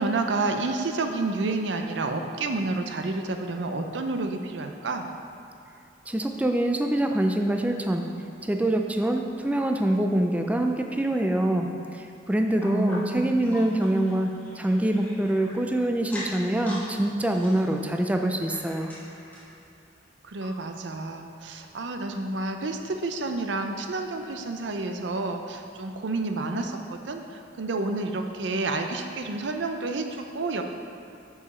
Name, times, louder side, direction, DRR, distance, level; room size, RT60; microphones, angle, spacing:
voice 1, 0.0-5.1 12.6-13.7 20.3-30.6, right 3 dB, 90° right, 5 dB, 0.6 m, -30 dB
voice 2, 6.1-8.1 8.4-18.9, right 1 dB, 10° right, 3 dB, 0.4 m, -25 dB
sound 1, 12.6-15.6 16.0-16.9 17.2-19.5 20.0-20.1 20.4-20.5 21.1-21.2, left 1 dB, 10° left, 1.7 m, -43 dB
7.0 x 4.9 x 5.0 m, 2.7 s
head